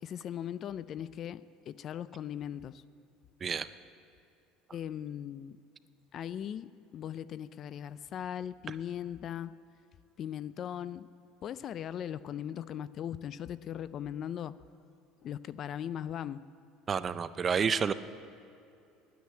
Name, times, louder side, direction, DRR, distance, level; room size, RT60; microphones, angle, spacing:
voice 1, 0.0-2.8 4.7-5.6 6.1-9.5 10.2-11.1 11.4-14.6 15.2-16.4, left 9 dB, 40° left, 17 dB, 0.3 m, -39 dB
voice 2, 16.9-17.9, right 6 dB, 30° right, 14 dB, 0.4 m, -29 dB
10.5 x 9.5 x 8.4 m, 2.6 s
supercardioid pair, 125°, 0 cm